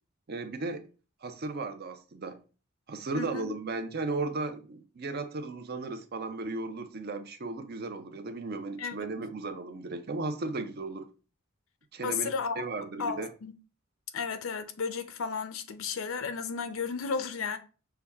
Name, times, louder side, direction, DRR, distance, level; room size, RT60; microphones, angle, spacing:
voice 1, 0.3-0.9 1.2-2.4 2.9-11.1 11.9-12.3 12.6-13.3, right 3 dB, 50° right, 0.6 m, -35 dB
voice 2, 3.1-3.6 8.8-9.0 12.0-12.7 13.0-13.5 14.1-17.6, left 5 dB, 80° left, 0.6 m, -33 dB
5.7 x 2.3 x 3.4 m
head